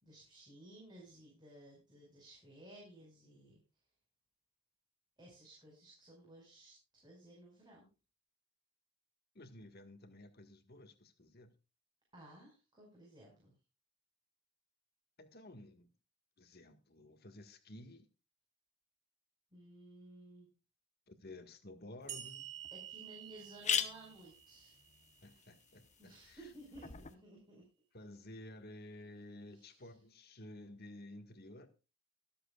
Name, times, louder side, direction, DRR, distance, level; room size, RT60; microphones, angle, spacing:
voice 1, 0.0-3.6 5.2-7.9 12.1-13.5 19.5-20.5 22.7-24.8 26.0-27.6 29.5-29.8, right 1 dB, 20° right, 5.4 m, -56 dB
voice 2, 9.4-11.5 15.2-15.9 16.4-18.1 21.1-22.5 25.2-26.5 27.9-31.7, left 1 dB, 50° left, 1.7 m, -53 dB
sound 1, 22.1-22.2 22.6-22.7 22.9-23.0 23.4-27.1, left 8 dB, 35° left, 1.0 m, -41 dB
sound 2, 22.1-25.5, right 10 dB, 55° right, 2.7 m, -50 dB
24.0 x 8.0 x 2.4 m
head